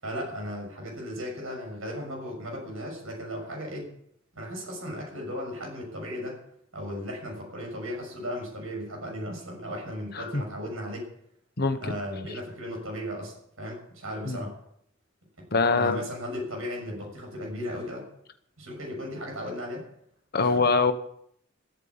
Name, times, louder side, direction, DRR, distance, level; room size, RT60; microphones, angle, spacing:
voice 1, 0.0-3.9 4.3-6.4 6.7-11.1 11.8-14.5 15.4-15.5 15.7-18.1 18.6-19.8 20.4-20.6, equal, 85° right, 1 dB, 6.7 m, -36 dB
voice 2, 11.6-12.0 14.3-14.4 15.5-16.0 20.3-20.9, left 4 dB, 50° left, 8 dB, 1.2 m, -23 dB
14.5 x 9.1 x 8.8 m, 0.71 s
head